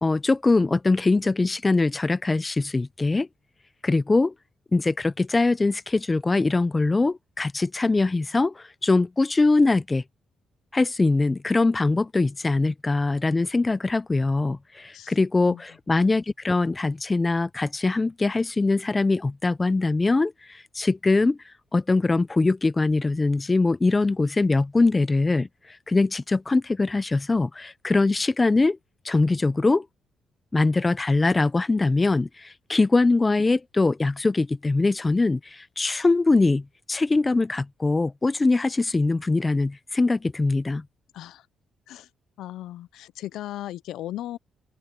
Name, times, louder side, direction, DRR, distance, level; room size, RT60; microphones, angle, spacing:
voice 1, 0.0-3.3 3.8-4.3 4.7-10.0 10.7-21.4 21.7-25.5 25.9-28.8 29.0-29.9 30.5-40.8, left 3 dB, 20° left, 0.7 m, -22 dB
voice 2, 42.4-44.4, left 13 dB, 80° left, 0.6 m, -36 dB
open air
cardioid pair, 90°, 0 cm